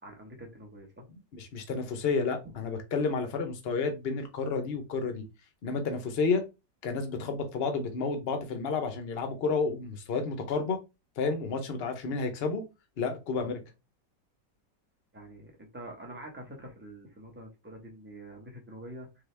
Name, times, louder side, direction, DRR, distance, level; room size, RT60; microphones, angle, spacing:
voice 1, 0.0-1.0 2.4-2.6 15.1-19.2, right 1 dB, 10° right, 0.9 m, -46 dB
voice 2, 1.3-5.3 5.6-6.4 6.8-10.8 11.2-12.7 13.0-13.6, left 4 dB, 45° left, 0.9 m, -31 dB
3.9 x 3.8 x 3.3 m
omnidirectional pair, 1.9 m